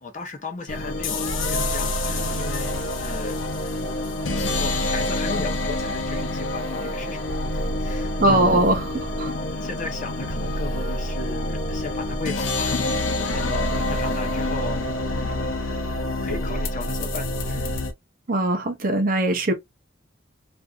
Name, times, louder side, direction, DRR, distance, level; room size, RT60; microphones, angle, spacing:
voice 1, 0.0-3.4 4.4-7.2 7.5-8.6 9.6-13.0 13.3-15.5 16.2-17.7, left 3 dB, 40° left, 0.7 m, -35 dB
sound 1, 0.7-17.9, left 1 dB, 85° left, 0.6 m, -27 dB
voice 2, 8.2-9.3 18.3-19.5, right 1 dB, 45° right, 0.6 m, -21 dB
2.6 x 2.5 x 2.3 m
head